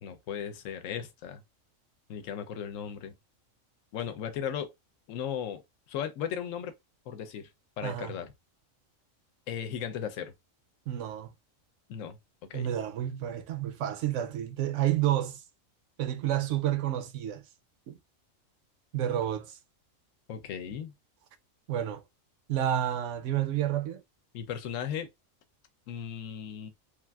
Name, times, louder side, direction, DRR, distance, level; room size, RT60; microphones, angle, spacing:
voice 1, 0.0-1.4 2.1-3.1 3.9-4.7 5.1-5.6 5.9-6.7 7.1-7.5 7.8-8.3 9.5-10.3 11.9-12.7 20.3-20.9 24.3-25.1 25.9-26.7, left 8 dB, 75° left, 1.0 m, -36 dB
voice 2, 7.8-8.1 10.9-11.3 12.5-15.4 16.0-17.4 17.9-18.0 18.9-19.6 21.7-22.0 22.5-24.0, right 11 dB, 70° right, 0.9 m, -30 dB
3.2 x 2.5 x 2.3 m
omnidirectional pair, 1.4 m